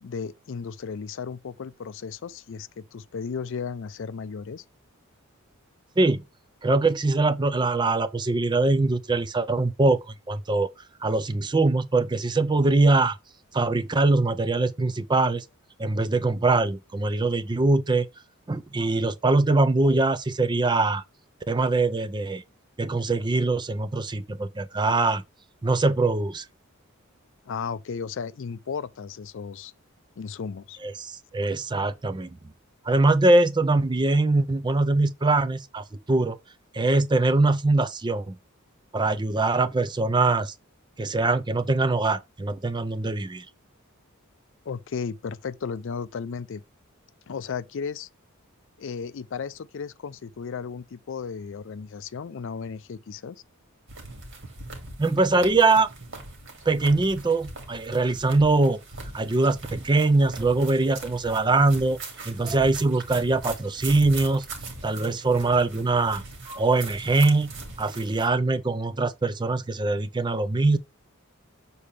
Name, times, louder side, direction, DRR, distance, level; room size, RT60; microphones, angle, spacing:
voice 1, 0.0-4.6 27.5-29.7 30.2-30.8 44.7-46.6 47.3-48.1 48.8-53.4, left 6 dB, 60° left, 0.4 m, -34 dB
voice 2, 6.6-10.7 11.0-13.2 13.5-15.4 15.8-18.1 18.5-21.0 21.5-22.4 22.8-25.2 25.6-26.4 30.8-32.4 32.8-36.4 36.7-38.4 38.9-40.5 41.0-43.5 55.0-55.9 56.7-58.8 59.1-64.4 64.8-67.5 67.8-70.8, right 3 dB, 20° right, 0.5 m, -23 dB
sound 1, 53.9-68.3, right 3 dB, 60° right, 2.2 m, -40 dB
6.8 x 4.2 x 3.3 m
head